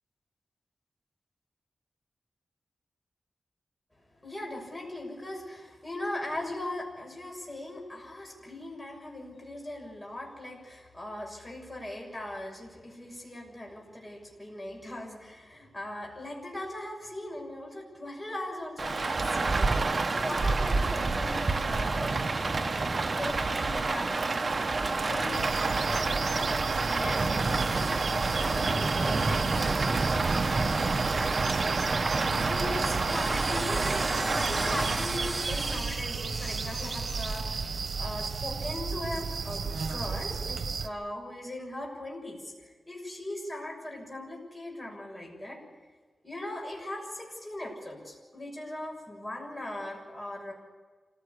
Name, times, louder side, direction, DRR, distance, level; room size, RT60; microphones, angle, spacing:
voice 1, 4.2-19.8 20.1-22.1 22.5-24.4 24.8-37.6 38.0-45.6 46.2-50.5, left 1 dB, 20° left, -1 dB, 6.8 m, -39 dB
Rain, 18.8-35.8, right 3 dB, 45° right, 1.0 m, -28 dB
sound 1, 25.0-25.6 27.4-31.7 32.9-38.7, right 1 dB, 5° right, 1.4 m, -41 dB
sound 2, 25.3-40.9, right 5 dB, 85° right, 1.2 m, -34 dB
26.5 x 16.5 x 8.4 m, 1.3 s
wide cardioid pair, 130°, 0 cm